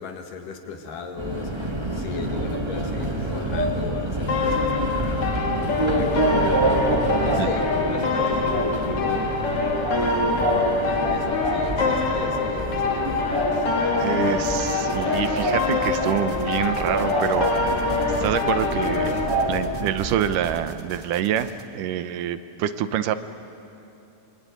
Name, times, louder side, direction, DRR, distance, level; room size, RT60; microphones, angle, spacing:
voice 1, 0.0-9.5 9.9-13.3, left 5 dB, 85° left, 4 dB, 3.6 m, -37 dB
Subway metro underground, 1.2-20.4, right 1 dB, 15° right, 1.1 m, -27 dB
sound 1, 4.3-19.3, left 4 dB, 50° left, 2.9 m, -25 dB
sound 2, 12.5-21.6, right 1 dB, 30° right, 0.6 m, -40 dB
voice 2, 14.0-17.5 18.2-19.2 19.5-21.5 21.7-23.2, right 10 dB, 80° right, 11 dB, 2.5 m, -26 dB
26.0 x 23.5 x 9.4 m, 2.8 s
omnidirectional pair, 3.7 m